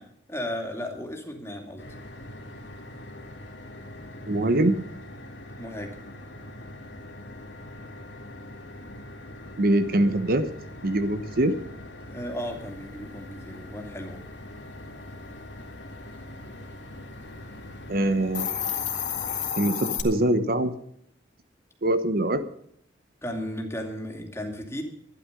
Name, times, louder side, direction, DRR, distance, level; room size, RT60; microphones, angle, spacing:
voice 1, 0.0-1.8 5.5-6.0 12.1-14.2 23.2-24.8, equal, 15° left, 2 dB, 2.6 m, -35 dB
sound 1, 1.8-19.5, left 1 dB, 75° left, 2.3 m, -42 dB
voice 2, 4.3-4.8 9.6-10.5 10.8-11.6 17.9-18.5 19.6-20.7 21.8-22.4, right 1 dB, 55° right, 11 dB, 1.0 m, -23 dB
Hiss, 18.2-20.0, left 9 dB, 45° left, 2.0 m, -29 dB
12.0 x 11.5 x 6.7 m, 0.69 s
head